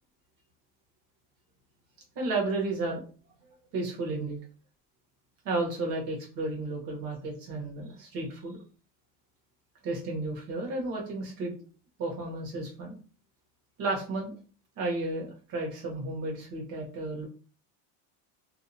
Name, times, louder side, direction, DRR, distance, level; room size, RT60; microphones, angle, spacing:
voice 1, 2.1-3.0 3.7-4.4 5.4-8.6 9.8-11.5 12.0-13.0 13.8-14.4 14.8-17.3, right 2 dB, 55° right, -1 dB, 1.2 m, -32 dB
2.7 x 2.2 x 2.7 m, 0.38 s
cardioid pair, 145°, 40 cm